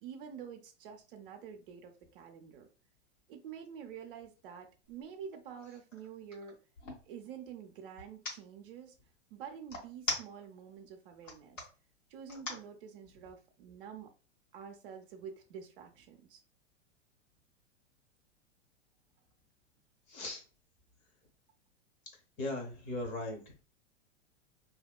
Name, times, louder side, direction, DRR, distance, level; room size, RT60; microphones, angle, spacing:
voice 1, 0.0-2.7 3.3-6.6 7.1-9.0 9.3-11.6 12.1-14.1 14.5-16.4, right 7 dB, 50° right, 4 dB, 0.5 m, -48 dB
sound 1, 4.8-5.0 5.5-7.1 8.0-8.4 9.7-10.7 11.1-11.7 12.3-12.7, left 2 dB, 80° left, 1.3 m, -39 dB
voice 2, 20.1-20.4 22.4-23.4, left 2 dB, 30° left, 2 dB, 0.8 m, -38 dB
2.7 x 2.1 x 2.3 m, 0.35 s
figure-of-eight pair, 100°, 37 cm